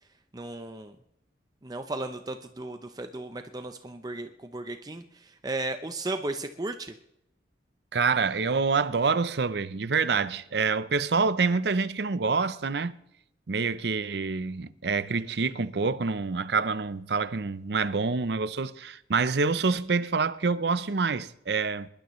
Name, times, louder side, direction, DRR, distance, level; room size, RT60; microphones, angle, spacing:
voice 1, 0.3-0.9 1.6-6.9, right 2 dB, 20° right, 0.6 m, -35 dB
voice 2, 7.9-13.0 13.5-21.9, right 4 dB, 70° right, 0.6 m, -27 dB
26.0 x 12.0 x 3.1 m
head